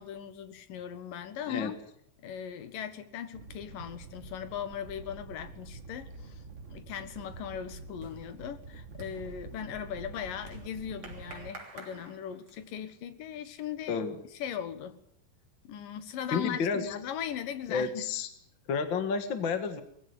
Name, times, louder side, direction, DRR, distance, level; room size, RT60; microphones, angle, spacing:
voice 1, 0.0-1.8 2.2-14.0 14.4-15.0 15.6-18.1, left 9 dB, 80° left, 12 dB, 3.1 m, -39 dB
Animal, 3.3-11.5, right 3 dB, 70° right, 0.7 m, -47 dB
sound 1, 7.9-12.9, right 2 dB, 30° right, 3.6 m, -51 dB
voice 2, 16.3-16.9 17.7-18.3 18.7-19.8, left 5 dB, 45° left, 9 dB, 1.9 m, -30 dB
21.0 x 15.0 x 9.8 m, 0.68 s
omnidirectional pair, 3.9 m